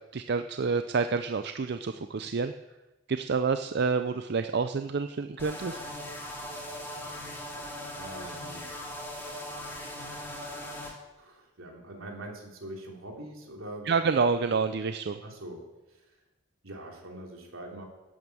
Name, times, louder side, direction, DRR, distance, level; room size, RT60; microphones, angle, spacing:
voice 1, 0.1-2.5 3.1-5.8 13.9-15.2, right 4 dB, 55° right, 9 dB, 0.5 m, -28 dB
sound 1, 5.4-10.9, left 1 dB, 10° left, 2.4 m, -39 dB
voice 2, 8.0-8.7 11.2-13.9 15.2-16.0 16.6-17.8, right 1 dB, 80° right, 0 dB, 3.2 m, -43 dB
12.0 x 8.9 x 7.8 m, 1.0 s
head